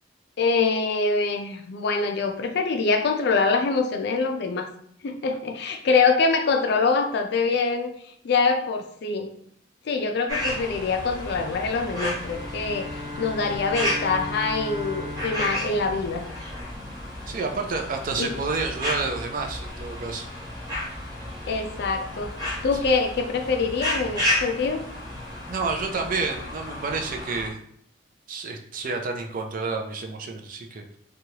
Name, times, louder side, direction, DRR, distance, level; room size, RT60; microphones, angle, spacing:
voice 1, 0.4-4.7 5.0-8.0 8.2-9.3 9.9-12.9 13.2-16.3 18.2-18.3 21.5-22.3 22.6-24.9, left 4 dB, 65° left, 5 dB, 0.4 m, -24 dB
sound 1, 10.3-27.5, left 1 dB, 20° right, 0.9 m, -32 dB
Bowed string instrument, 12.2-16.9, left 2 dB, 5° left, 1.3 m, -37 dB
voice 2, 17.3-20.2 25.5-27.6 28.3-31.0, right 4 dB, 50° right, 4 dB, 0.4 m, -29 dB
3.0 x 2.3 x 2.8 m, 0.66 s
head